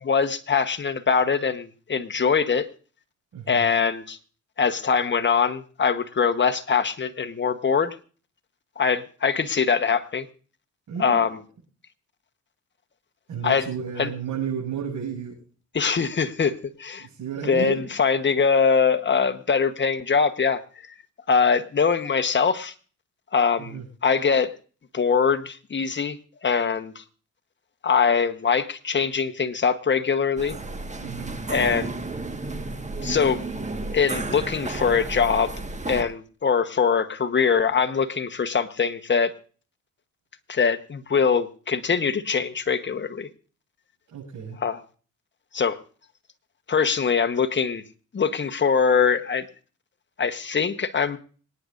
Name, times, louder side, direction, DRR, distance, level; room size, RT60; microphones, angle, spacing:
voice 1, 0.0-2.7 3.5-4.2 4.6-8.0 8.8-10.2 11.0-11.4 13.4-13.6 14.0-14.1 15.7-17.1 17.4-20.6 21.3-22.7 23.3-24.5 24.9-26.2 26.4-27.0 27.8-30.6 31.5-31.9 33.0-33.4 33.9-35.5 35.8-39.3 40.5-43.3 44.6-44.8 45.5-45.8 46.7-47.8 48.1-49.5 50.2-51.2, left 6 dB, 35° left, 9 dB, 1.1 m, -22 dB
voice 2, 3.3-3.7 10.9-11.3 13.3-15.3 17.0-17.8 23.6-23.9 31.0-31.4 44.1-44.6, right 7 dB, 75° right, -4 dB, 7.5 m, -32 dB
sound 1, 30.4-36.0, right 2 dB, 20° right, 1.5 m, -32 dB
26.0 x 9.6 x 2.6 m, 0.40 s
cardioid pair, 80°, 31 cm